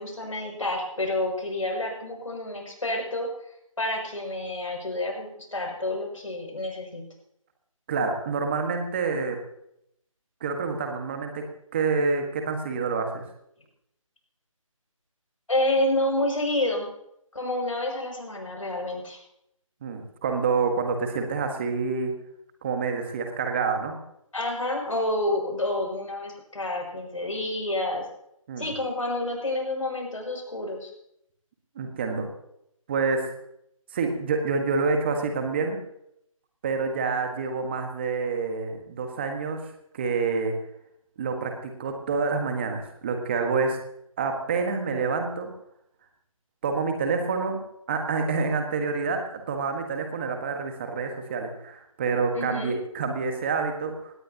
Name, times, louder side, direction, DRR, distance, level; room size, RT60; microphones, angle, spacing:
voice 1, 0.0-3.3 3.8-7.0 15.5-16.9 17.3-19.2 24.3-28.0 28.6-30.9 52.3-52.8, left 1 dB, 70° left, 1 dB, 6.7 m, -29 dB
voice 2, 7.9-9.4 10.4-11.4 11.7-13.2 19.8-22.1 22.6-24.0 28.5-28.7 31.7-32.3 32.9-33.3 33.9-35.8 36.6-39.6 39.9-40.6 41.2-43.8 44.2-45.5 46.6-54.1, right 4 dB, 20° right, 4 dB, 1.5 m, -27 dB
18.0 x 18.0 x 2.9 m, 0.77 s
figure-of-eight pair, 160°, 18 cm